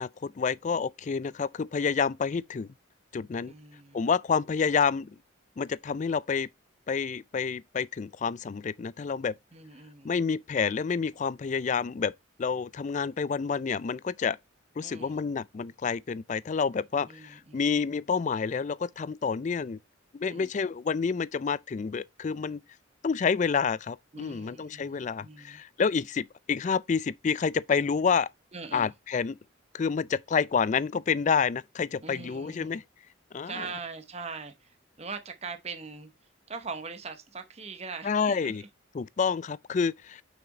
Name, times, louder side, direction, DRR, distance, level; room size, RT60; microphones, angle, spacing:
voice 1, 0.0-2.7 3.1-3.5 3.9-5.1 5.6-6.5 6.9-9.4 10.0-12.1 12.4-14.4 14.8-19.8 20.1-22.6 23.0-28.3 28.7-29.4 29.7-32.8 33.3-33.7 38.0-38.6 38.9-40.2, left 5 dB, 35° left, 0.3 m, -28 dB
voice 2, 3.5-4.1 9.5-10.2 14.8-15.2 17.0-17.7 20.2-20.5 24.1-25.6 28.5-28.9 32.0-32.8 33.5-36.1 36.5-38.6, right 4 dB, 30° right, 0.9 m, -41 dB
6.0 x 6.0 x 3.9 m
head